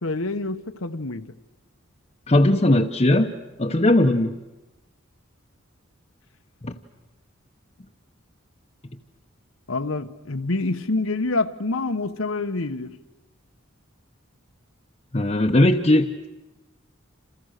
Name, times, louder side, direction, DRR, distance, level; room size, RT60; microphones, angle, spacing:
voice 1, 0.0-1.2 9.7-12.9, left 3 dB, 85° left, 1.2 m, -26 dB
voice 2, 2.3-3.3 3.6-4.3 6.6-6.7 15.1-16.3, left 1 dB, 30° left, 0.9 m, -18 dB
29.5 x 28.0 x 6.6 m
head